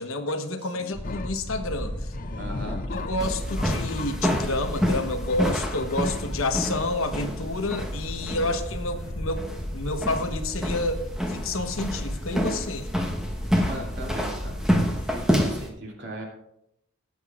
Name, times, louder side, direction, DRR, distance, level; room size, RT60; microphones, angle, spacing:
voice 1, 0.0-1.9 2.9-9.5 9.7-11.0 11.3-12.9, left 2 dB, 70° left, 7 dB, 1.1 m, -29 dB
sound 1, 0.9-15.2, equal, 20° left, 1.2 m, -35 dB
sound 2, 1.0-1.4 2.0-6.3, left 4 dB, 40° left, 0.4 m, -39 dB
voice 2, 2.4-2.8 8.4-8.5 13.6-14.7 15.1-16.3, right 1 dB, 55° right, -1 dB, 2.8 m, -38 dB
sound 3, 3.2-15.7, equal, 5° right, 1.1 m, -29 dB
18.5 x 9.0 x 2.5 m, 0.81 s
head